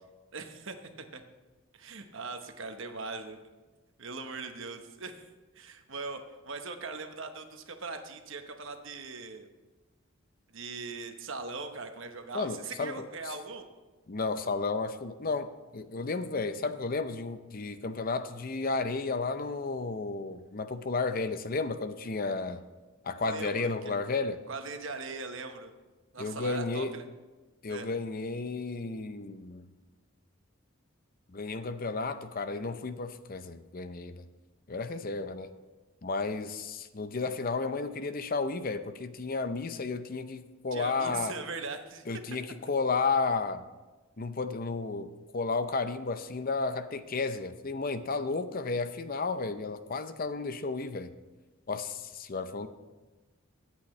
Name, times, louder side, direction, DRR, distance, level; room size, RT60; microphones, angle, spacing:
voice 1, 0.3-0.7 1.1-1.2 1.7-3.4 4.0-5.3 5.5-9.5 10.5-13.7 23.2-23.9 24.5-25.7 26.1-27.0 27.7-27.9 40.7-42.0, right 4 dB, 60° right, 6 dB, 1.1 m, -40 dB
voice 2, 12.3-13.1 14.1-22.6 23.0-24.4 26.2-26.9 27.6-29.7 31.3-34.2 34.7-35.5 36.0-41.3 42.1-43.6 44.2-51.1 51.7-52.7, left 4 dB, 40° left, 11 dB, 0.6 m, -33 dB
21.5 x 8.5 x 3.2 m, 1.2 s
head